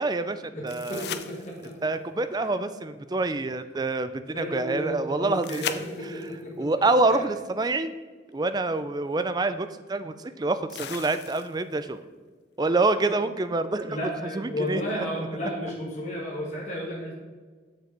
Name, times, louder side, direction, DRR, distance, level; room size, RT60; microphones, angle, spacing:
voice 1, 0.0-1.0 1.8-5.6 6.6-7.9 8.3-12.0 12.6-14.8, right 2 dB, 20° right, 11 dB, 0.4 m, -26 dB
voice 2, 0.5-1.8 2.4-2.5 4.2-6.7 7.1-7.2 13.1-13.2 13.9-17.1, equal, 40° left, -4 dB, 1.8 m, -33 dB
sound 1, 0.7-1.9 5.4-6.4 8.3-8.4 10.7-11.7 14.7-14.8, left 8 dB, 65° left, 0.5 m, -37 dB
7.3 x 6.4 x 4.3 m, 1.4 s
head